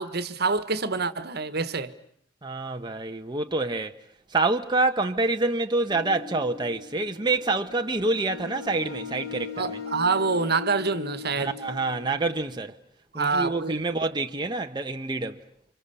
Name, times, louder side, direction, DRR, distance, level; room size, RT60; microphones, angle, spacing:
voice 1, 0.0-1.9 9.6-11.6 13.1-13.8, right 4 dB, 55° right, 1.6 m, -26 dB
voice 2, 2.4-3.9 4.3-9.7 11.4-12.7 13.1-15.4, right 3 dB, 25° right, 1.0 m, -27 dB
sound 1, 5.9-12.4, left 6 dB, 75° left, 7.4 m, -39 dB
30.0 x 26.5 x 7.0 m
head